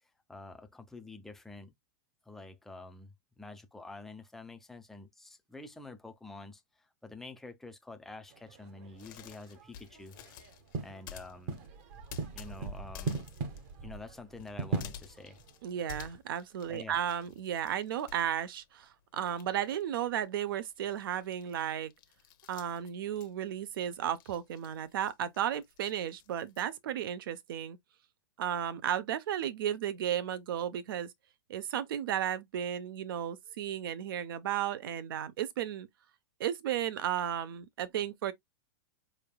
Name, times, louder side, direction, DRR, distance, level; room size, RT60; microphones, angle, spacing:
voice 1, 0.3-1.7 2.3-10.2 10.8-11.7 12.3-13.2 13.8-15.4 16.7-17.0, left 3 dB, 5° left, 0.4 m, -48 dB
Lewes kik bangs thuds, 8.3-16.2, right 4 dB, 40° right, 1.0 m, -40 dB
sound 1, 8.9-18.9 19.2-26.7, left 9 dB, 55° left, 0.8 m, -52 dB
voice 2, 15.6-21.9 22.5-27.8 28.4-31.1 31.5-35.9 36.4-38.3, right 10 dB, 70° right, 0.7 m, -34 dB
4.6 x 3.5 x 2.2 m
supercardioid pair, 155°, 12 cm